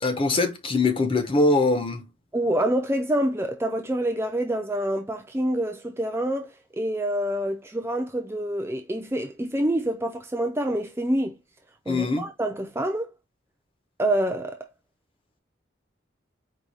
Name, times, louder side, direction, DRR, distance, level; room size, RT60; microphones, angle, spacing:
voice 1, 0.0-2.0 11.9-12.2, left 2 dB, 30° left, 0.7 m, -22 dB
voice 2, 2.3-11.3 11.9-13.1 14.0-14.6, right 1 dB, 15° right, 0.4 m, -27 dB
4.7 x 2.2 x 4.0 m
head